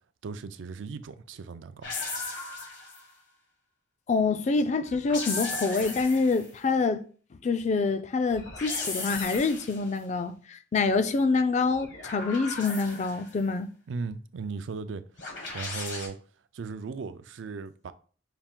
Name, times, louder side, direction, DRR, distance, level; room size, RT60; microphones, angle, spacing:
voice 1, 0.2-1.9 13.9-16.2 16.5-17.9, right 4 dB, 80° right, 0.4 m, -37 dB
sound 1, 1.8-3.1 4.9-6.5 8.3-9.9 11.7-13.4 15.2-16.1, left 3 dB, 75° left, 1.3 m, -36 dB
voice 2, 4.1-7.0 7.4-13.7, left 4 dB, 40° left, 0.3 m, -26 dB
5.6 x 2.4 x 3.6 m
head